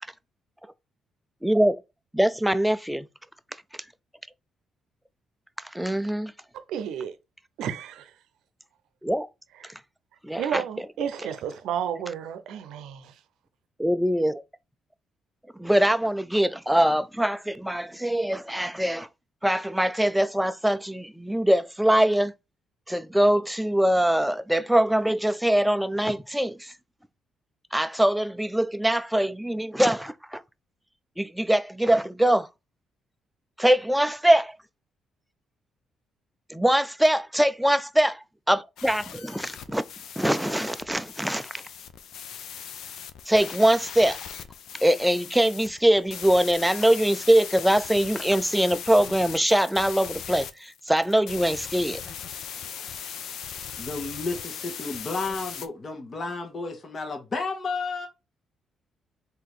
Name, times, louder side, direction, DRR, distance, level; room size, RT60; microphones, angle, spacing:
voice 1, 1.4-1.8 2.1-3.1 5.7-6.3 9.0-9.3 10.2-10.6 13.8-14.3 15.6-19.1 19.4-22.3 22.9-26.7 27.7-30.4 31.2-32.5 33.6-34.6 36.5-39.8 40.2-41.6 43.3-44.2 44.8-52.0, right 1 dB, 5° right, 0.4 m, -23 dB
voice 2, 6.5-7.1 7.6-8.1 10.4-13.1, right 9 dB, 85° right, 0.6 m, -32 dB
sound 1, 38.8-55.7, left 8 dB, 75° left, 0.6 m, -39 dB
voice 3, 53.8-58.1, left 3 dB, 35° left, 1.2 m, -32 dB
4.0 x 2.8 x 4.8 m
cardioid pair, 90°, 0 cm